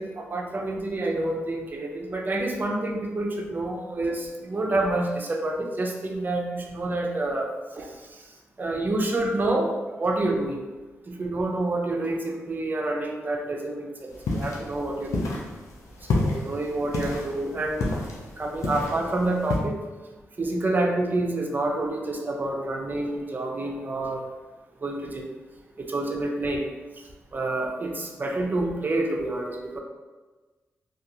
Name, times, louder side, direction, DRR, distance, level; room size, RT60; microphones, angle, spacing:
voice 1, 0.0-7.9 8.6-10.6 11.1-15.3 16.1-17.9 18.4-19.8 20.4-24.2 24.8-25.3 25.8-26.6 27.3-29.8, right 2 dB, 35° right, 1 dB, 0.5 m, -28 dB
sound 1, 14.1-19.6, left 2 dB, 80° left, 0.5 m, -30 dB
2.3 x 2.3 x 2.8 m, 1.3 s
cardioid pair, 50°, 5 cm